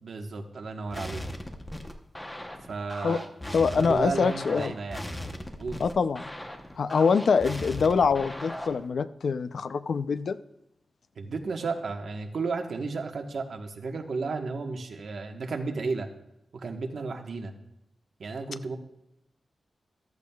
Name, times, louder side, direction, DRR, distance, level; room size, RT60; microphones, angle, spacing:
voice 1, 0.0-1.2 2.7-3.2 3.7-5.0 5.6-5.8 11.2-16.1 16.5-17.5 18.2-18.8, right 4 dB, 70° right, 3 dB, 1.2 m, -33 dB
sound 1, 0.9-8.9, left 1 dB, 10° left, 0.9 m, -38 dB
voice 2, 3.5-4.7 5.8-6.2 6.8-10.4, left 5 dB, 70° left, 13 dB, 0.4 m, -24 dB
14.5 x 12.5 x 2.3 m, 0.84 s
wide cardioid pair, 135°, 0 cm